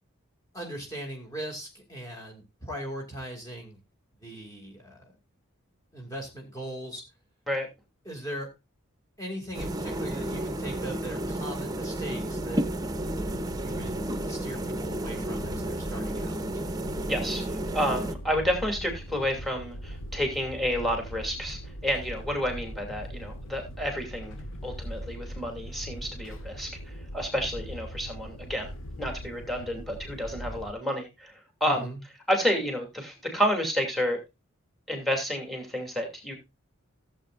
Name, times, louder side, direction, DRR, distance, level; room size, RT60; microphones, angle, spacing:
voice 1, 0.5-3.8 4.2-5.1 5.9-7.0 8.0-8.5 9.2-12.7 13.5-14.0 14.3-16.4 31.6-32.0, right 1 dB, 15° left, 0 dB, 2.5 m, -39 dB
sound 1, 9.5-18.1, right 1 dB, 20° right, 0.8 m, -32 dB
sound 2, 13.0-30.7, equal, 65° left, 1.1 m, -40 dB
voice 2, 17.1-17.5 17.7-24.3 24.6-26.7 27.1-28.7 29.0-31.3 31.6-31.9 32.3-34.2 34.9-36.4, equal, ahead, 3 dB, 2.8 m, -30 dB
16.5 x 7.9 x 2.5 m, 0.25 s
head